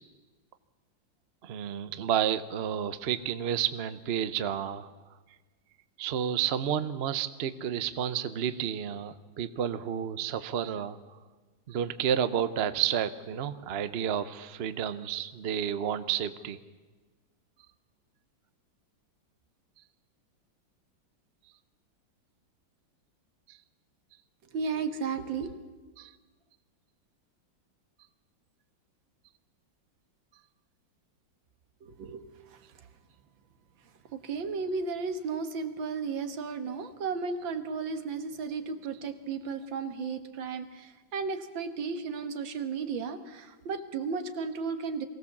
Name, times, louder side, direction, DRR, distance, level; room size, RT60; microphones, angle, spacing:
voice 1, 1.4-4.9 6.0-11.0 11.7-16.6 23.5-23.6 26.0-26.1, right 9 dB, 55° right, 13 dB, 0.7 m, -31 dB
voice 2, 24.5-25.6 31.8-32.2 32.5-32.6 34.1-45.1, right 5 dB, 80° right, 9 dB, 2.0 m, -34 dB
23.0 x 17.0 x 7.2 m, 1.3 s
omnidirectional pair, 2.1 m